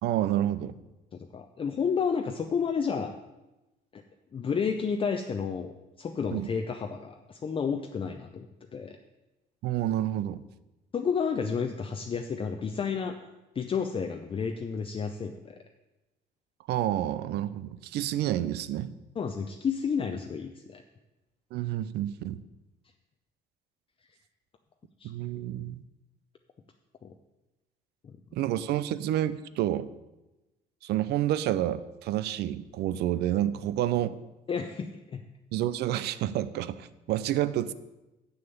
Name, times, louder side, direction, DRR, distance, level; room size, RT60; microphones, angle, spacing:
voice 1, 0.0-0.7 6.3-6.5 9.6-10.4 16.7-19.0 21.5-22.4 25.0-25.8 28.3-29.9 30.8-34.2 35.5-37.7, right 12 dB, 75° right, 15 dB, 0.5 m, -29 dB
voice 2, 1.1-3.1 3.9-4.0 4.3-5.7 6.0-8.5 8.7-9.0 10.9-13.2 13.5-15.6 19.2-20.8 25.0-25.1 27.0-27.1 28.0-28.1 34.5-35.2, left 6 dB, 30° left, 5 dB, 0.6 m, -31 dB
7.1 x 6.7 x 6.9 m, 1.0 s
cardioid pair, 110°, 17 cm